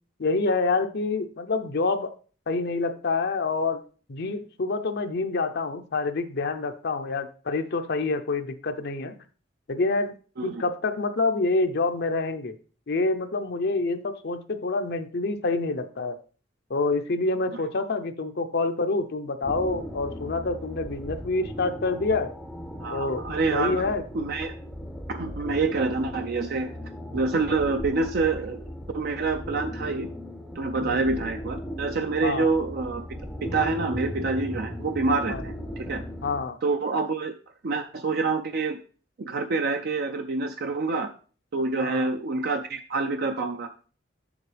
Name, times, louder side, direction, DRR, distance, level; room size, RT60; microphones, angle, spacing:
voice 1, 0.2-2.1 2.5-3.8 4.1-9.1 9.7-10.1 10.4-12.6 12.9-16.2 16.7-22.3 22.9-23.2 23.5-24.0 30.8-31.0 32.2-32.5 35.3-35.4 36.2-36.6 41.8-42.1, left 3 dB, 55° left, 8 dB, 0.6 m, -27 dB
sound 1, 19.4-36.4, equal, ahead, 0.6 m, -37 dB
voice 2, 22.8-23.9 24.1-24.5 25.1-26.7 27.1-28.6 28.9-30.1 30.6-33.0 33.4-35.5 35.8-36.0 36.6-37.3 37.6-38.8 39.2-41.1 41.5-43.7, right 3 dB, 55° right, 6 dB, 0.5 m, -27 dB
7.2 x 6.8 x 3.3 m, 0.38 s
head